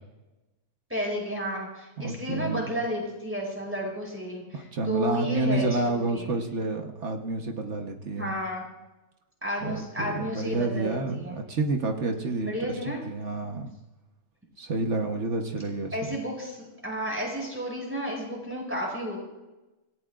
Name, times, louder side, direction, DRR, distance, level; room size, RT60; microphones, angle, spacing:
voice 1, 0.9-6.3 8.2-8.6 9.4-11.4 12.4-13.0 15.9-19.2, equal, 10° right, -2 dB, 5.8 m, -32 dB
voice 2, 2.0-2.7 4.5-8.3 9.6-13.7 14.6-16.1, right 3 dB, 50° right, 4 dB, 1.4 m, -29 dB
26.0 x 17.0 x 2.5 m, 1.1 s
omnidirectional pair, 1.6 m